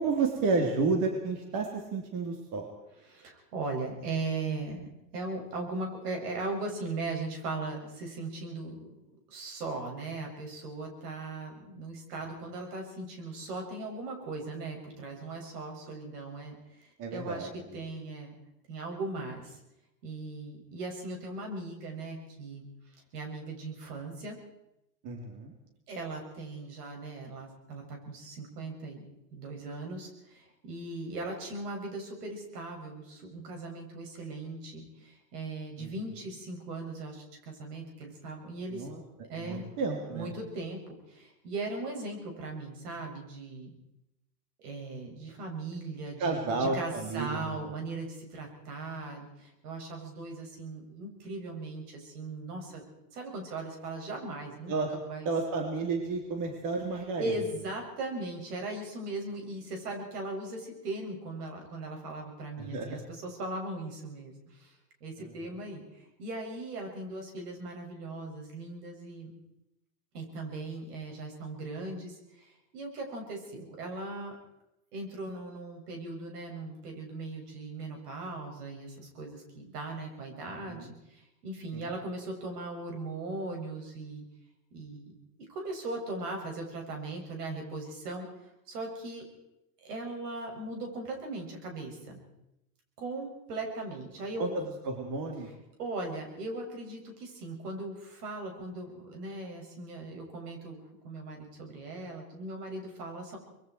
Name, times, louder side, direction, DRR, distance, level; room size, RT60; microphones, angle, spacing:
voice 1, 0.0-2.7 17.0-17.5 25.0-25.5 35.8-35.9 38.7-40.3 46.2-47.7 54.7-54.9 55.3-57.4 62.6-63.0 65.2-65.3 80.7-80.9 81.7-81.9 94.4-95.5, right 3 dB, 40° right, 2 dB, 3.5 m, -31 dB
voice 2, 3.1-8.9 9.3-18.4 18.7-19.6 20.0-22.7 23.1-24.4 25.9-29.1 29.3-38.9 39.3-39.6 40.1-40.8 41.1-43.7 44.6-52.8 53.1-54.7 55.0-55.3 56.9-64.7 65.0-69.3 70.1-74.4 74.9-84.2 84.7-85.1 85.5-88.3 88.7-89.2 89.8-92.2 93.0-94.6 95.8-103.4, right 2 dB, 75° right, 2 dB, 7.2 m, -39 dB
25.0 x 22.0 x 4.7 m, 0.87 s
hypercardioid pair, 115°, 46 cm